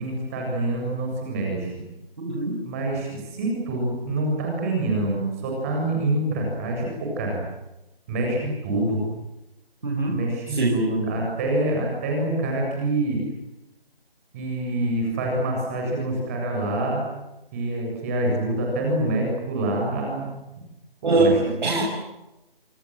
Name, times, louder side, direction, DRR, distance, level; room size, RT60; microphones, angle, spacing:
voice 1, 0.0-1.8 2.6-6.9 7.1-7.4 8.1-9.0 10.1-13.2 14.3-17.0 17.5-20.2 21.0-21.3 21.7-21.8, right 2 dB, 15° right, 0 dB, 7.3 m, -26 dB
voice 2, 2.2-2.6 9.8-10.2 10.5-10.8 21.0-21.8, right 2 dB, 50° right, -1 dB, 6.2 m, -22 dB
27.5 x 27.0 x 7.7 m, 0.96 s
figure-of-eight pair, 170°, 30 cm